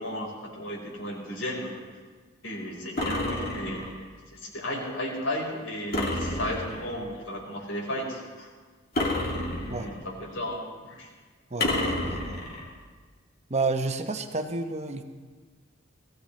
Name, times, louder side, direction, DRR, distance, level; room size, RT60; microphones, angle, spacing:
voice 1, 0.0-1.8 2.4-3.8 4.3-8.5 9.7-11.1, left 1 dB, 85° left, -2 dB, 4.5 m, -34 dB
sound 1, 3.0-4.0 5.9-7.0 8.9-10.1 11.6-12.7, left 1 dB, 50° left, 2.4 m, -30 dB
voice 2, 11.5-12.4 13.5-15.0, right 3 dB, 35° right, 6 dB, 0.9 m, -30 dB
20.0 x 15.5 x 3.2 m, 1.5 s
head